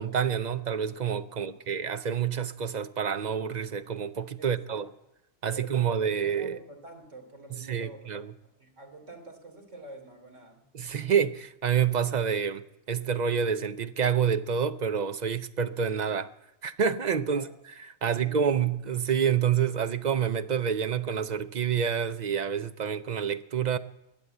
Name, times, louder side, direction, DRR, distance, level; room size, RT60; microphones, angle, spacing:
voice 1, 0.0-4.9 5.4-6.6 7.5-8.3 10.7-16.3 16.6-17.5 18.0-23.8, right 7 dB, 45° right, 0.6 m, -28 dB
voice 2, 4.4-4.8 5.5-8.1 8.6-10.6 17.3-17.5 18.0-18.6, right 2 dB, 70° right, 3.6 m, -47 dB
21.0 x 8.5 x 7.8 m
omnidirectional pair, 1.3 m